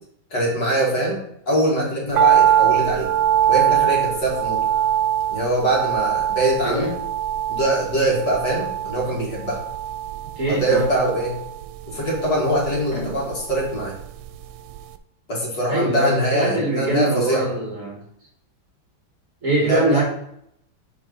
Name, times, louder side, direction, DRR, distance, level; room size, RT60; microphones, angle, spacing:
voice 1, 0.3-1.2 1.5-3.1 3.5-4.6 5.3-6.9 7.5-9.6 10.5-11.4 11.9-13.9 15.3-17.4 19.6-20.0, right 1 dB, 55° left, -5 dB, 2.9 m, -23 dB
sound 1, 2.2-14.4 14.7-14.8, right 10 dB, 90° right, 1.4 m, -22 dB
voice 2, 6.6-6.9 10.4-10.9 12.9-13.1 15.7-18.0 19.4-20.0, right 2 dB, 40° right, -2 dB, 2.0 m, -23 dB
7.0 x 4.8 x 4.1 m, 0.73 s
omnidirectional pair, 2.2 m